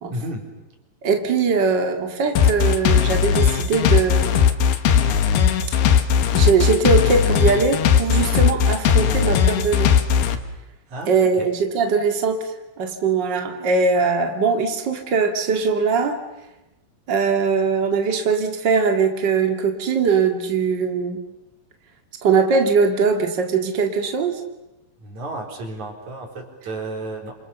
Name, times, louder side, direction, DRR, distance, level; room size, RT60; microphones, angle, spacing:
voice 1, 0.1-0.4 10.9-11.5 25.0-27.3, right 2 dB, 35° right, 2 dB, 5.0 m, -32 dB
voice 2, 1.0-4.4 6.3-9.9 11.1-12.5 12.8-16.2 17.1-21.2 22.2-24.3, right 5 dB, 75° right, 4 dB, 1.0 m, -21 dB
sound 1, 2.4-10.4, left 8 dB, 65° left, 2.6 m, -17 dB
29.5 x 27.5 x 7.0 m, 0.96 s
omnidirectional pair, 6.0 m